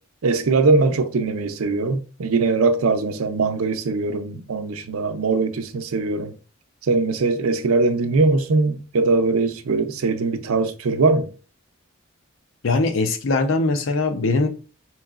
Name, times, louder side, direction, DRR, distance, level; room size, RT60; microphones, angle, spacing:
voice 1, 0.2-6.3 6.8-11.3, right 3 dB, 90° right, 0.5 m, -21 dB
voice 2, 12.6-14.5, left 3 dB, 70° left, 0.6 m, -21 dB
4.5 x 3.0 x 2.4 m
head